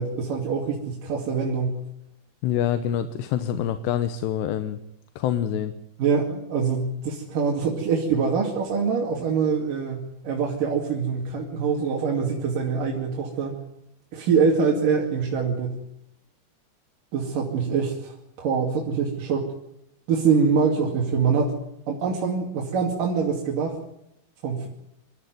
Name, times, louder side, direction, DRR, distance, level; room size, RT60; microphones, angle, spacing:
voice 1, 0.0-1.8 6.0-13.6 14.1-15.8 17.1-19.5 20.1-21.6 21.9-23.8 24.4-24.7, right 5 dB, 55° right, -1 dB, 3.8 m, -24 dB
voice 2, 2.4-4.8 5.2-5.7, left 10 dB, 75° left, 10 dB, 3.1 m, -26 dB
25.5 x 14.0 x 9.4 m, 0.82 s
omnidirectional pair, 5.2 m